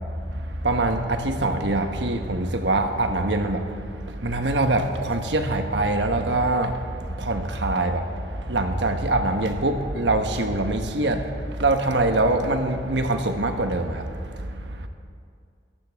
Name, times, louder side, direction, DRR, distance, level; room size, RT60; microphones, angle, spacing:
voice 1, 0.2-14.9, right 2 dB, 80° right, 1.2 m, -24 dB
22.5 x 14.5 x 3.5 m
head